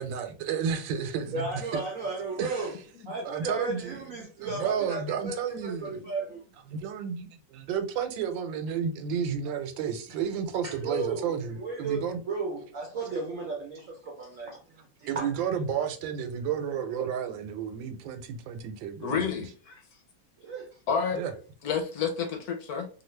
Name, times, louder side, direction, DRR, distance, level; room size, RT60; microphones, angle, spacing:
voice 1, 0.0-1.8 2.4-2.7 3.2-4.0 4.4-6.0 6.7-12.2 15.1-19.4 21.1-21.3, right 7 dB, 85° right, 1.4 m, -32 dB
voice 2, 1.3-2.7 3.1-6.5 10.6-15.3 20.4-20.8, right 3 dB, 65° right, 0.8 m, -35 dB
voice 3, 19.0-19.8 20.9-21.2 21.6-22.9, left 6 dB, 65° left, 1.1 m, -30 dB
3.0 x 2.4 x 3.1 m
omnidirectional pair, 2.0 m